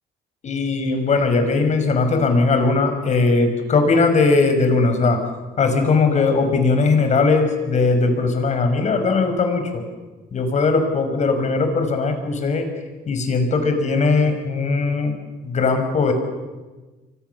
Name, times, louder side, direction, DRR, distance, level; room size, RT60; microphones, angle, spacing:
voice 1, 0.4-5.2 5.6-9.8 10.3-12.7 13.1-15.2 15.4-16.1, left 3 dB, 45° left, 6 dB, 5.7 m, -19 dB
29.0 x 24.0 x 7.0 m, 1.2 s
cardioid pair, 110°, 17 cm